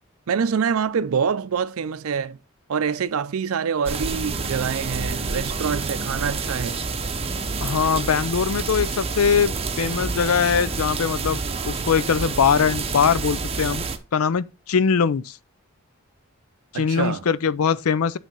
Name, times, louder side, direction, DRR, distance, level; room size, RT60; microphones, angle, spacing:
voice 1, 0.3-2.4 2.7-6.8 16.7-17.3, right 6 dB, 80° right, 0.5 m, -25 dB
sound 1, 3.9-14.0, right 4 dB, 25° right, 0.7 m, -28 dB
voice 2, 7.6-11.4 11.7-13.9 14.1-15.4 16.7-18.2, left 6 dB, 85° left, 0.5 m, -21 dB
9.1 x 3.3 x 5.4 m
head